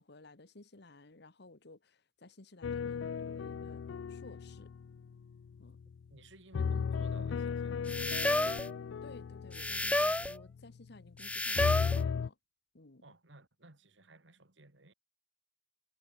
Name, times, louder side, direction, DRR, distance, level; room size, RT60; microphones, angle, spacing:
voice 1, 0.0-3.8 4.1-4.7 5.6-5.8 9.0-12.4 12.7-13.0, left 2 dB, 65° left, 1.6 m, -56 dB
sound 1, 2.6-6.0 6.5-11.2 11.6-12.3, left 6 dB, 80° left, 0.4 m, -36 dB
voice 2, 6.1-8.2 13.0-14.9, right 2 dB, 75° right, 2.9 m, -57 dB
sound 2, 7.9-8.7 9.5-10.4 11.2-12.0, left 1 dB, 5° left, 0.5 m, -31 dB
head